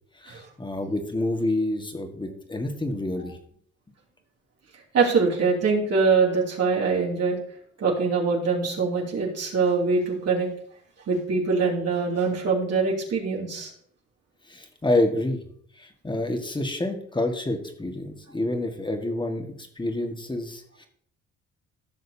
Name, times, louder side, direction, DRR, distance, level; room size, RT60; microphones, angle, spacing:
voice 1, 0.2-3.4 14.5-15.4 15.8-20.9, left 1 dB, 15° left, 5 dB, 1.7 m, -28 dB
voice 2, 4.9-7.4 7.8-10.5 11.1-13.7, right 4 dB, 55° right, -3 dB, 2.8 m, -23 dB
15.5 x 6.3 x 2.8 m, 0.63 s
cardioid pair, 90°, 30 cm